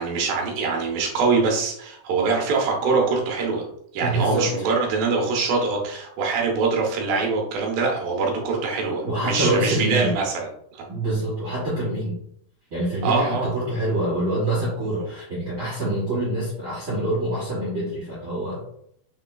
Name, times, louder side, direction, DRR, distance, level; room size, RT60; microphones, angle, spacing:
voice 1, 0.0-3.7 3.9-10.8 13.0-13.5, right 4 dB, 75° right, 0 dB, 2.2 m, -24 dB
voice 2, 4.0-4.6 9.0-10.1 10.9-12.1 12.7-18.6, right 1 dB, 60° right, -8 dB, 1.3 m, -25 dB
6.2 x 3.6 x 2.2 m, 0.69 s
omnidirectional pair, 4.8 m